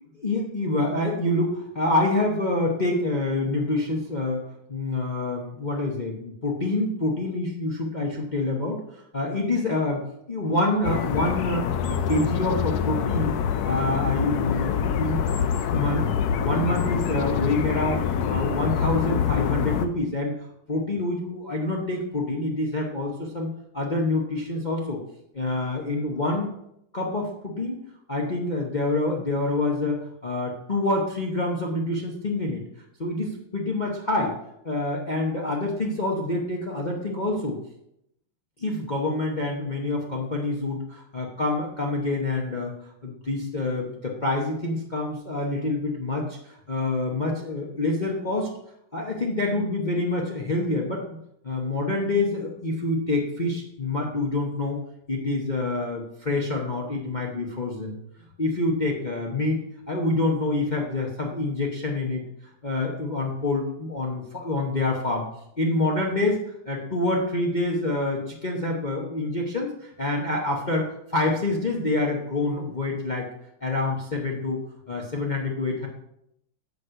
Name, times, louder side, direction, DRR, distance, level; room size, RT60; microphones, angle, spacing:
voice 1, 0.1-10.0 10.3-13.4 13.6-16.0 16.4-20.3 20.7-25.0 25.3-26.5 26.9-27.8 28.1-32.6 33.0-34.4 34.6-37.6 38.6-42.7 43.0-48.5 48.9-51.2 51.4-54.8 55.1-58.0 58.4-62.2 62.6-65.2 65.6-66.4 66.6-73.3 73.6-74.6 74.9-75.9, left 2 dB, 50° left, -1 dB, 0.5 m, -27 dB
sound 1, 10.8-19.9, left 7 dB, 90° left, 0.8 m, -25 dB
7.8 x 5.3 x 5.6 m, 0.78 s
omnidirectional pair, 2.3 m